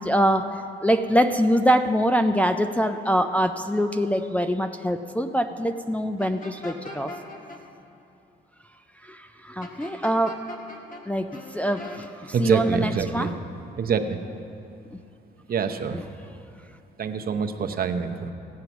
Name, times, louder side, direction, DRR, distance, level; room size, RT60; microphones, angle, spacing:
voice 1, 0.0-7.1 9.0-10.4 11.1-13.3, equal, 5° left, 5 dB, 0.4 m, -24 dB
sound 1, 6.2-7.6 9.6-11.0 11.3-12.1, left 2 dB, 45° left, 1.7 m, -40 dB
voice 2, 12.3-13.3 13.8-14.2 15.5-16.0 17.0-18.3, right 6 dB, 50° right, 6 dB, 0.8 m, -26 dB
16.0 x 7.7 x 5.9 m, 2.7 s
cardioid pair, 90°, 20 cm